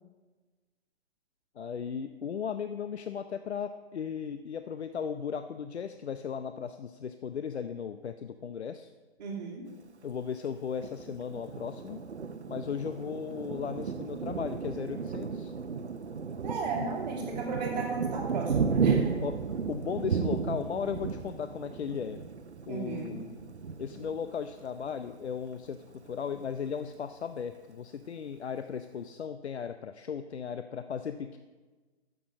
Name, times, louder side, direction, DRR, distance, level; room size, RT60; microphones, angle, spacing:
voice 1, 1.6-8.9 10.0-12.0 12.5-15.5 19.2-19.4 19.7-22.2 22.7-23.3 23.8-25.8 26.0-31.4, left 7 dB, 75° left, 10 dB, 0.6 m, -36 dB
voice 2, 9.2-9.7 16.4-19.1 22.7-23.3, right 4 dB, 40° right, -1 dB, 2.1 m, -35 dB
Thunder, 10.8-25.1 25.6-25.8 26.1-26.7, right 5 dB, 85° right, 0.8 m, -34 dB
10.0 x 6.8 x 6.3 m, 1.3 s
figure-of-eight pair, 135°, 33 cm